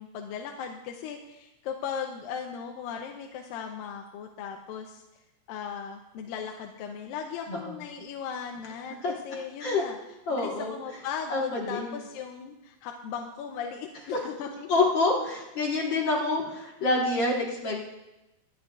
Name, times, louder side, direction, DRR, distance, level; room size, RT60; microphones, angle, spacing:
voice 1, 0.0-5.0 5.5-10.0 10.3-14.7, left 7 dB, 90° left, 2 dB, 2.4 m, -37 dB
voice 2, 10.3-10.7 11.3-12.0 14.7-17.9, left 2 dB, 50° left, -2 dB, 1.5 m, -27 dB
25.0 x 9.2 x 2.4 m, 0.98 s
omnidirectional pair, 4.0 m